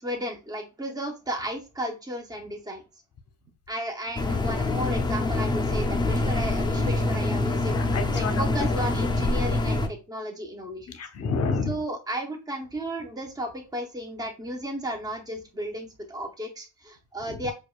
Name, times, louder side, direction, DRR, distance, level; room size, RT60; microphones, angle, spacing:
voice 1, 0.0-2.8 3.7-7.8 8.1-11.0 11.7-17.5, equal, 10° right, 2 dB, 0.8 m, -34 dB
sound 1, 4.2-9.9, left 2 dB, 15° left, 0.4 m, -25 dB
voice 2, 7.8-8.7 10.9-11.8 17.3-17.4, left 4 dB, 45° left, 8 dB, 0.7 m, -30 dB
4.8 x 2.4 x 2.3 m, 0.28 s
cardioid pair, 125°, 34 cm